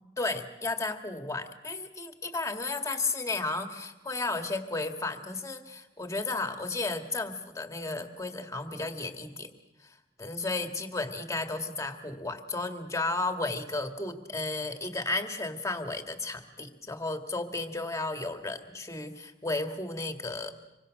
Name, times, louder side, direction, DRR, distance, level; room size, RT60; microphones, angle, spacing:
voice 1, 0.2-9.5 9.8-20.5, left 2 dB, 20° left, 6 dB, 2.0 m, -33 dB
26.0 x 24.0 x 6.4 m, 0.99 s
head